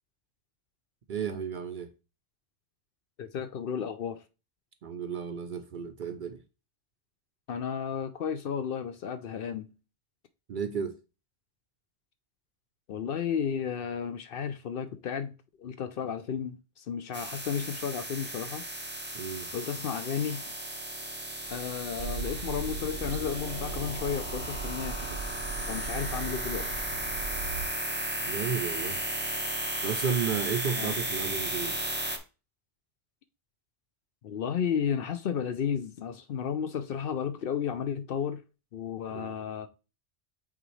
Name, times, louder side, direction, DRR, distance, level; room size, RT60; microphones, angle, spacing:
voice 1, 1.1-1.9 4.8-6.4 10.5-10.9 19.1-19.5 28.2-29.0 29.8-31.8 39.1-39.3, right 6 dB, 55° right, 0.6 m, -33 dB
voice 2, 3.2-4.2 7.5-9.7 12.9-18.6 19.5-20.4 21.5-25.0 25.7-26.8 30.7-30.9 34.2-38.4 38.7-39.7, left 7 dB, 60° left, 0.7 m, -33 dB
sound 1, 17.1-32.2, right 1 dB, 10° right, 0.7 m, -35 dB
sound 2, 21.4-27.3, left 1 dB, 40° left, 2.4 m, -48 dB
sound 3, 22.0-27.7, right 5 dB, 75° right, 1.0 m, -38 dB
8.2 x 3.7 x 3.1 m
omnidirectional pair, 1.2 m